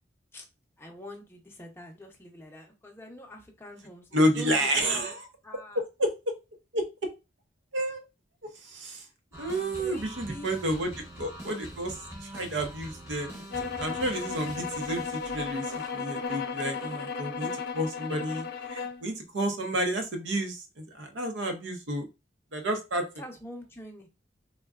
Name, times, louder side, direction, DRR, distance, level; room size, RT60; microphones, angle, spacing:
voice 1, 0.8-5.1 5.4-5.8 9.8-10.5 10.7-11.0 23.2-24.1, left 1 dB, 15° left, 2 dB, 0.6 m, -45 dB
voice 2, 4.1-5.2 5.7-6.1 6.7-6.8 7.7-8.0 8.6-9.0 9.4-13.4 13.8-22.1 22.5-23.1, right 1 dB, 80° right, 5 dB, 0.7 m, -30 dB
sound 1, 9.3-17.4, equal, 15° right, 0.8 m, -45 dB
sound 2, 13.5-19.0, left 5 dB, 55° left, 0.4 m, -35 dB
3.6 x 2.2 x 2.3 m, 0.27 s
head